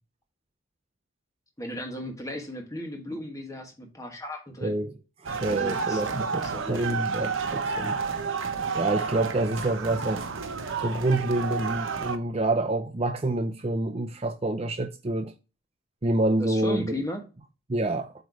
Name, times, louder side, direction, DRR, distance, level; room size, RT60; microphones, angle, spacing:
voice 1, 1.6-4.8 5.5-7.0 16.4-17.2, equal, 15° left, 1.4 m, -36 dB
voice 2, 4.6-4.9 5.2-8.0 8.7-10.2 10.8-15.3 16.0-17.0 17.7-18.1, right 2 dB, 30° right, 0.5 m, -27 dB
sound 1, 5.3-12.2, right 5 dB, 70° right, 1.0 m, -30 dB
8.0 x 3.1 x 4.7 m
head